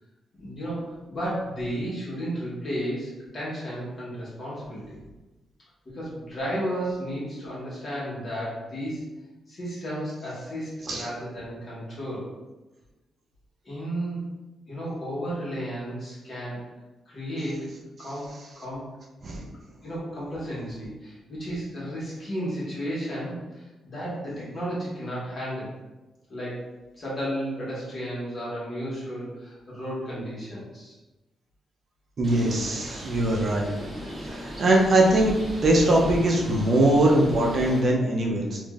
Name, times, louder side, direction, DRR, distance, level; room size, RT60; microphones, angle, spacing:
voice 1, 0.4-5.0 5.9-9.0 9.5-12.3 13.6-14.3 14.7-16.6 17.1-17.7 18.0-18.8 19.8-25.7 26.3-26.6 27.0-31.0, equal, 40° left, -7 dB, 1.4 m, -33 dB
Bird, 32.2-37.8, equal, 10° right, 1.4 m, -37 dB
voice 2, 32.2-33.7 34.4-38.6, right 1 dB, 45° right, -2 dB, 0.6 m, -21 dB
3.6 x 2.6 x 2.4 m, 1.1 s
cardioid pair, 120°, 0 cm